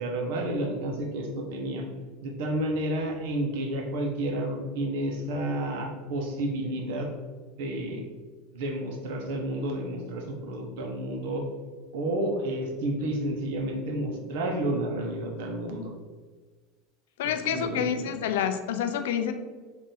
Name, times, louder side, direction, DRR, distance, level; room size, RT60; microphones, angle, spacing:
voice 1, 0.0-1.8 2.2-7.1 7.6-8.0 8.5-11.4 11.9-15.9 17.2-18.1, right 1 dB, 75° right, 2 dB, 0.8 m, -31 dB
voice 2, 17.2-19.3, left 8 dB, 90° left, 8 dB, 0.4 m, -28 dB
3.7 x 2.6 x 3.9 m, 1.4 s
supercardioid pair, 125°, 0 cm